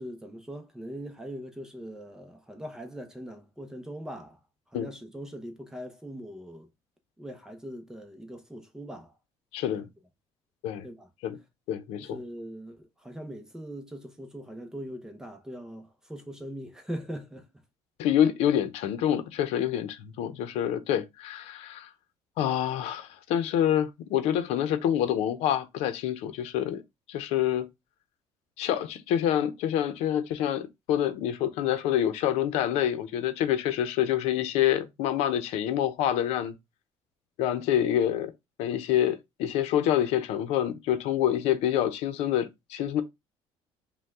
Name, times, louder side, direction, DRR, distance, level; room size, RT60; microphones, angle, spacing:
voice 1, 0.0-4.4 4.7-6.7 7.2-9.1 9.8-9.9 10.8-11.1 12.0-17.5, equal, 5° right, 0.6 m, -41 dB
voice 2, 9.5-9.9 10.6-10.9 11.2-11.4 11.7-12.2 18.0-21.9 22.4-26.8 27.1-27.7 28.6-36.5 37.4-38.3 38.6-43.0, left 10 dB, 80° left, 0.7 m, -27 dB
5.4 x 2.3 x 3.5 m
cardioid pair, 165°, 11 cm